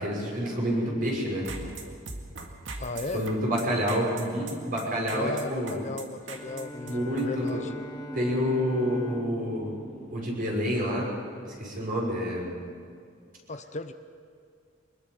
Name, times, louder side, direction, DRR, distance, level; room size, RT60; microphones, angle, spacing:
voice 1, 0.0-1.4 3.1-5.8 6.8-7.6 8.1-9.7 10.1-11.1 11.4-12.6, equal, 45° right, -2 dB, 6.3 m, -28 dB
sound 1, 1.4-7.5, right 3 dB, 70° right, 2.1 m, -40 dB
voice 2, 2.8-3.3 5.1-7.7 13.5-13.9, left 2 dB, 40° left, 9 dB, 0.8 m, -35 dB
sound 2, 5.9-12.2, equal, ahead, 3.2 m, -46 dB
Bowed string instrument, 6.2-11.1, left 1 dB, 20° left, 2.7 m, -44 dB
24.5 x 21.0 x 5.6 m, 2.2 s
head